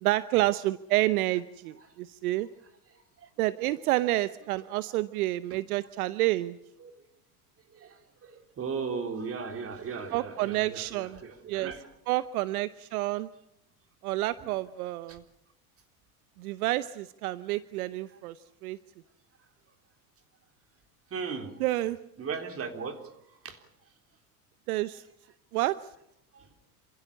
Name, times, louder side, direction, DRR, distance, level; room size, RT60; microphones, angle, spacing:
voice 1, 0.0-2.5 3.4-6.6 10.1-11.2 11.5-11.7 12.1-13.3 14.0-15.2 16.4-18.3 18.6-18.8 21.6-22.0 24.7-25.0 25.5-25.8, right 17 dB, 75° right, 15 dB, 0.9 m, -29 dB
voice 2, 2.9-3.3 4.9-5.0 6.8-7.1 7.7-11.9 14.4-14.5 15.1-15.2 18.1-18.2 21.1-21.5 22.2-23.6 26.3-26.5, right 5 dB, 30° right, 6 dB, 3.6 m, -38 dB
28.0 x 16.0 x 8.5 m, 0.76 s
hypercardioid pair, 100°, 44 cm